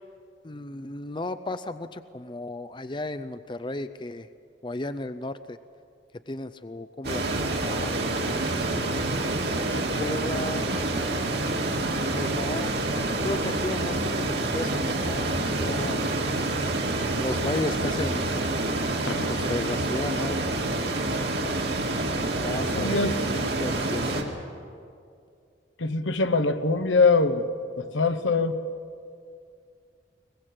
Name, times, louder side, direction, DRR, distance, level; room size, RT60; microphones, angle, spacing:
voice 1, 0.4-4.3 4.6-5.6 6.3-8.6 9.5-10.7 12.1-12.7 13.2-16.1 17.2-18.3 19.3-20.9 22.4-24.3, left 2 dB, 25° left, 12 dB, 0.5 m, -34 dB
sound 1, 7.0-24.2, right 2 dB, 60° right, 2.2 m, -27 dB
voice 2, 22.8-23.2 25.8-27.5 27.8-28.6, left 3 dB, 85° left, 10 dB, 1.1 m, -23 dB
22.5 x 20.5 x 7.7 m, 2.4 s
head